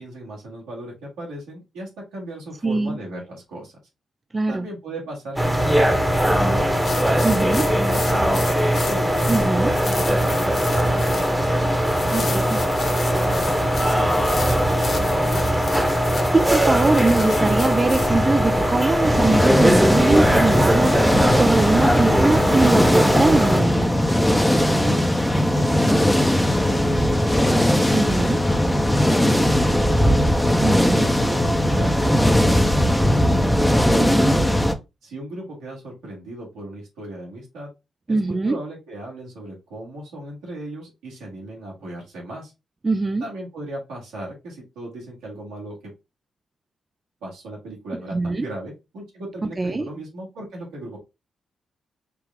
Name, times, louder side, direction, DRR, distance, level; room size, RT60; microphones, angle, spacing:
voice 1, 0.0-3.7 4.5-6.8 7.1-8.4 8.8-11.7 12.1-12.5 13.1-15.5 24.6-25.2 25.5-30.3 30.7-33.4 33.9-34.5 35.0-37.7 38.1-42.5 43.2-45.8 47.2-51.0, right 1 dB, 85° right, 1.9 m, -36 dB
voice 2, 2.6-3.0 4.3-4.7 7.2-7.6 9.3-9.7 12.1-12.6 16.3-23.9 27.9-28.4 30.6-31.1 34.0-34.4 38.1-38.6 42.8-43.2 48.1-48.5 49.4-49.9, right 3 dB, 35° right, 0.4 m, -22 dB
sound 1, 5.4-23.6, equal, 10° right, 1.0 m, -20 dB
sound 2, 6.7-18.1, left 4 dB, 55° left, 0.7 m, -34 dB
sound 3, 19.0-34.7, equal, 10° left, 0.7 m, -19 dB
4.7 x 2.3 x 3.5 m
supercardioid pair, 50°, 0 cm